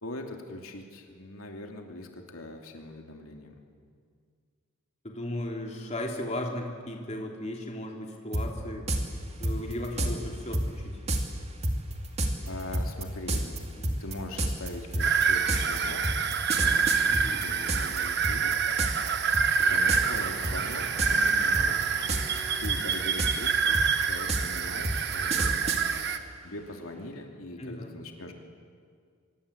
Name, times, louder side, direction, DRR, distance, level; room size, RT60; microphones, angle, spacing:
voice 1, 0.0-3.6 9.9-10.2 12.5-13.6 14.0-16.1 16.5-18.6 19.6-21.8 22.6-25.8 26.4-28.3, left 1 dB, 80° left, 2 dB, 2.7 m, -41 dB
voice 2, 5.0-8.8 9.4-11.0 13.8-14.0 17.1-17.4 27.6-27.9, left 1 dB, 30° left, 1 dB, 3.2 m, -36 dB
sound 1, 8.3-8.4 8.9-9.0 9.4-10.1 10.5-10.7 11.1-11.2 11.6-18.0 18.2-19.1 19.3-19.6 19.9-20.2 20.4-21.3 21.5-22.4 22.6-25.8, right 2 dB, 30° right, 2.7 m, -28 dB
sound 2, 15.0-26.2, right 6 dB, 50° right, 1.4 m, -27 dB
Wind instrument woodwind instrument, 19.6-23.1, right 1 dB, 55° left, 7.7 m, -45 dB
24.5 x 23.5 x 8.6 m, 2.1 s
head